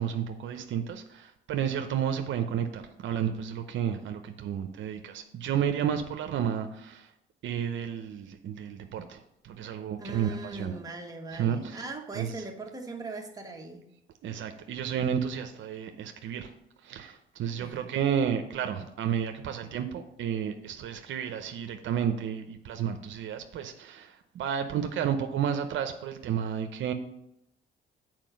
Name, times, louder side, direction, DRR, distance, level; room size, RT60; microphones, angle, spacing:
voice 1, 0.0-7.1 7.4-10.8 11.3-11.8 12.2-12.4 14.2-16.5 16.8-26.9, right 8 dB, 70° right, 7 dB, 0.7 m, -31 dB
voice 2, 10.0-13.9 17.6-17.9, right 3 dB, 20° right, 1 dB, 1.5 m, -40 dB
7.6 x 4.6 x 6.3 m, 0.81 s
cardioid pair, 90°, 20 cm